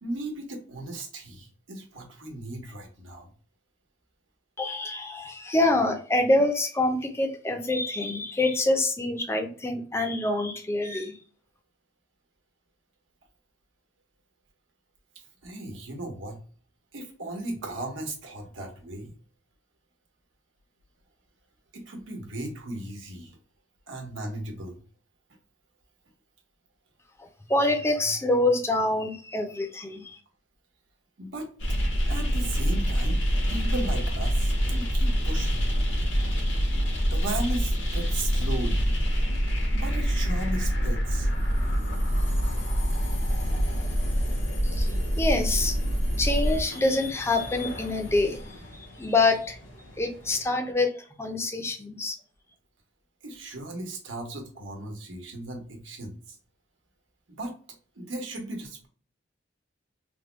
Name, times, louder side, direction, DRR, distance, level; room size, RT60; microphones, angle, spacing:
voice 1, 0.0-3.3 15.4-16.4 16.9-19.1 21.7-23.4 23.9-24.8 31.2-31.5 32.1-33.2 33.5-35.7 37.1-39.0 39.7-41.3 53.2-56.4 57.4-57.5 58.0-58.9, right 1 dB, 90° right, 2 dB, 1.1 m, -36 dB
voice 2, 4.6-11.2 27.5-30.0 44.6-44.9 45.2-45.8 46.2-48.4 49.0-49.6 50.0-52.1, left 2 dB, 15° left, 4 dB, 0.5 m, -26 dB
sound 1, 31.6-50.5, equal, 85° left, 1.1 m, -26 dB
3.5 x 2.2 x 3.1 m, 0.42 s
head